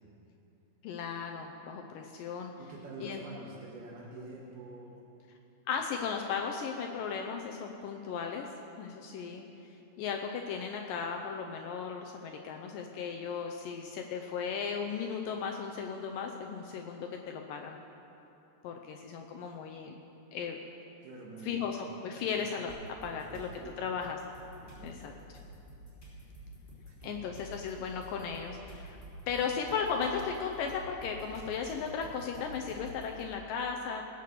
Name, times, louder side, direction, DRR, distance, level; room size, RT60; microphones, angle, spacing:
voice 1, 0.8-2.5 3.0-3.2 5.7-8.5 8.8-9.5 10.0-17.8 18.6-20.0 20.3-20.6 21.4-22.7 23.0-23.5 23.8-24.2 24.8-25.1 27.0-29.0 29.3-34.0, left 6 dB, 85° left, 2 dB, 1.9 m, -36 dB
voice 2, 2.6-5.0 21.0-21.8 22.2-22.4 23.0-24.0 24.6-25.2 26.8-27.2, right 2 dB, 75° right, -3 dB, 3.2 m, -47 dB
sound 1, 22.7-23.5 24.0-33.2, equal, 15° left, 2.9 m, -50 dB
18.0 x 8.3 x 6.7 m, 3.0 s
omnidirectional pair, 4.8 m